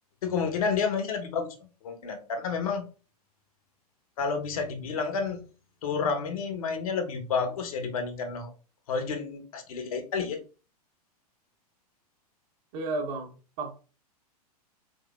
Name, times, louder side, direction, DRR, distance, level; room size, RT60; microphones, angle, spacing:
voice 1, 0.2-1.5 1.8-2.8 4.2-5.4 5.8-8.5 8.9-10.4, left 5 dB, 65° left, 6 dB, 0.9 m, -30 dB
voice 2, 12.7-13.7, right 3 dB, 45° right, 3 dB, 1.0 m, -33 dB
3.9 x 3.0 x 2.3 m, 0.35 s
figure-of-eight pair, 100°, 20 cm